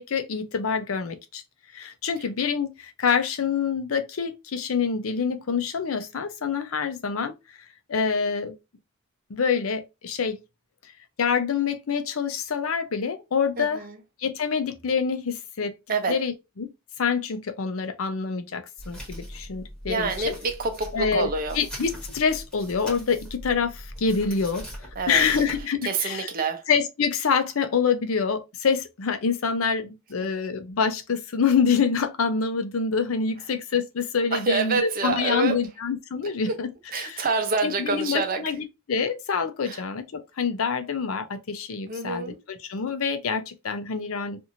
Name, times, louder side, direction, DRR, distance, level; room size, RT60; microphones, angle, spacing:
voice 1, 0.0-1.4 1.7-7.3 7.9-8.5 9.3-10.4 11.2-13.8 14.2-15.7 16.1-16.7 17.0-20.1 20.9-21.3 21.5-24.7 25.1-26.3 26.7-37.3 37.6-44.4, left 6 dB, 75° left, 0.6 m, -26 dB
voice 2, 13.6-14.0 15.9-16.2 19.9-21.6 25.0-25.2 25.8-26.6 34.3-35.6 36.5-36.6 36.9-38.4 39.6-39.8 41.9-42.4, right 4 dB, 45° right, 0.6 m, -27 dB
sound 1, 18.8-25.6, equal, 5° left, 1.4 m, -40 dB
2.9 x 2.6 x 2.5 m
head